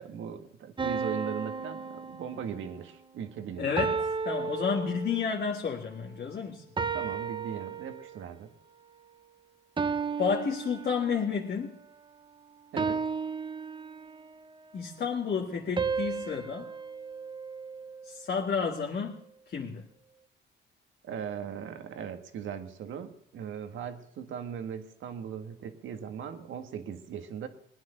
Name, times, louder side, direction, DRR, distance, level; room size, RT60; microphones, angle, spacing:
voice 1, 0.0-3.9 6.9-8.5 12.7-13.0 21.0-27.5, right 8 dB, 80° right, 1.7 m, -39 dB
sound 1, 0.8-2.7 3.8-5.4 6.8-8.3 9.8-11.4 12.8-14.4 15.8-18.1, right 5 dB, 25° right, 0.9 m, -34 dB
voice 2, 3.6-4.0 4.3-6.6 10.2-11.8 14.7-16.7 18.0-19.8, left 6 dB, 50° left, 1.8 m, -31 dB
20.5 x 9.7 x 6.5 m
cardioid pair, 90°, 20 cm